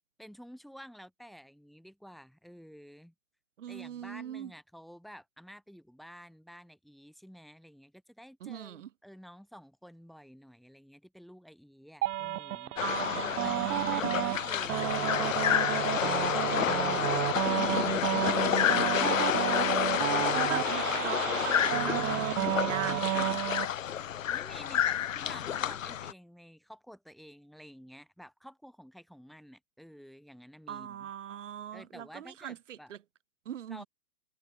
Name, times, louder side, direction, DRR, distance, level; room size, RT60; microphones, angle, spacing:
voice 1, 0.2-3.1 3.7-13.0 13.4-15.4 15.7-19.4 24.0-31.1 31.7-32.9 33.7-33.8, equal, ahead, 2.1 m, -51 dB
voice 2, 3.6-4.5 8.4-8.9 12.8-14.2 19.5-23.4 30.7-33.0 33.4-33.9, right 10 dB, 50° right, 4.8 m, -40 dB
sound 1, 12.0-23.7, right 14 dB, 75° right, 0.5 m, -31 dB
sound 2, 12.8-26.1, left 10 dB, 55° left, 1.5 m, -30 dB
hypercardioid pair, 165°, 46 cm